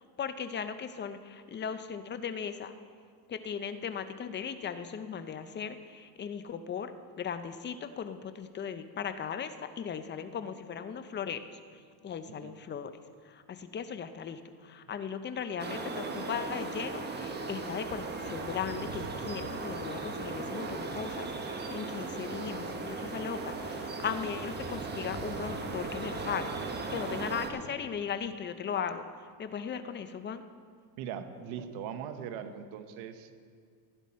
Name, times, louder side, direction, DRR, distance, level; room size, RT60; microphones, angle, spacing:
voice 1, 0.0-2.7 3.3-11.4 12.0-12.9 13.2-30.4, left 7 dB, 25° left, 10 dB, 0.5 m, -37 dB
sound 1, 15.6-27.5, right 3 dB, 20° right, 1.2 m, -37 dB
voice 2, 31.0-33.4, right 8 dB, 70° right, 9 dB, 1.1 m, -40 dB
15.5 x 10.0 x 4.2 m, 2.1 s
supercardioid pair, 120°, 49 cm